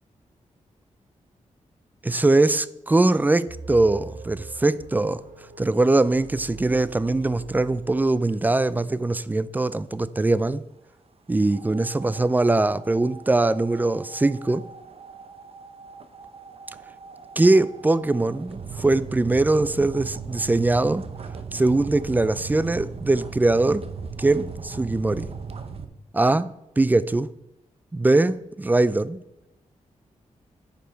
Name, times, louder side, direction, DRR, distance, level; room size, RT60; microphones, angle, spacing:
voice 1, 2.0-5.2 5.6-10.6 11.3-14.7 17.4-21.0 21.5-23.8 24.2-25.3 26.1-26.5 26.8-27.3 27.9-29.2, right 2 dB, 15° right, 0.3 m, -21 dB
sound 1, 3.5-8.5, right 4 dB, 80° right, 1.3 m, -43 dB
sound 2, 11.5-25.8, right 5 dB, 50° right, 0.7 m, -38 dB
9.5 x 5.2 x 4.4 m
wide cardioid pair, 120°, 13 cm